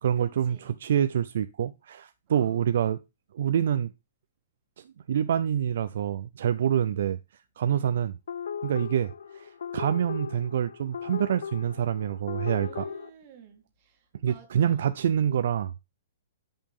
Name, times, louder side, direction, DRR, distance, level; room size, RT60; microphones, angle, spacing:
voice 1, 0.0-3.0 3.3-3.9 4.8-7.2 7.6-8.2 8.6-12.9 14.2-15.8, right 9 dB, 55° right, 0.4 m, -26 dB
voice 2, 2.3-2.6 6.9-7.1 12.6-15.0, right 7 dB, 30° right, 1.8 m, -53 dB
sound 1, 8.3-13.1, left 7 dB, 80° left, 0.6 m, -37 dB
10.5 x 5.3 x 3.6 m
hypercardioid pair, 170°, 0 cm